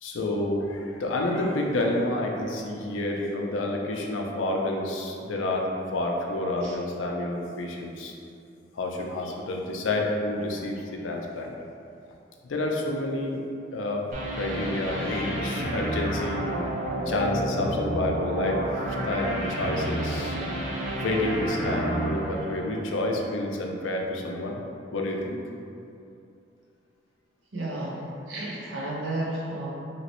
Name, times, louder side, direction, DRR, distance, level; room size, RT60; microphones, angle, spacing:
voice 1, 0.0-8.1 8.7-11.5 12.4-13.4 13.7-14.1 14.3-16.5 17.1-18.6 18.9-20.4 21.0-24.6 24.9-25.4, left 2 dB, 90° left, 0 dB, 0.5 m, -29 dB
sound 1, 14.1-23.2, right 1 dB, 45° right, 0.5 m, -30 dB
voice 2, 27.5-29.7, right 1 dB, 80° right, -5 dB, 0.8 m, -32 dB
3.0 x 2.9 x 2.9 m, 2.6 s
head